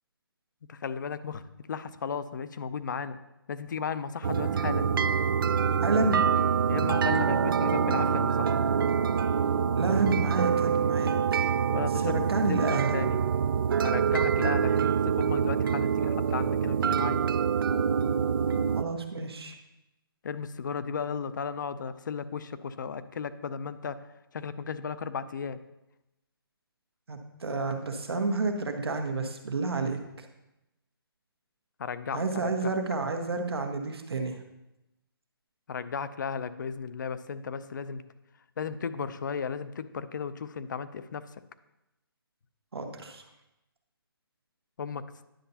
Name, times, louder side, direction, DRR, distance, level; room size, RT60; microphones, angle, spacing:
voice 1, 0.7-1.4 1.7-3.2 3.5-4.9 6.7-8.6 11.7-13.2 13.8-17.2 20.2-25.6 31.8-32.7 35.7-38.0 38.6-41.4 44.8-45.0, left 6 dB, 50° left, 13 dB, 0.5 m, -35 dB
sound 1, 4.2-18.8, right 7 dB, 60° right, 0.4 m, -26 dB
voice 2, 5.8-6.2 9.8-11.4 12.0-12.9 18.7-19.6 27.1-30.3 32.1-34.4 42.7-43.2, right 3 dB, 85° right, 5 dB, 1.2 m, -30 dB
10.0 x 6.7 x 2.8 m, 0.93 s
hypercardioid pair, 160°, 13 cm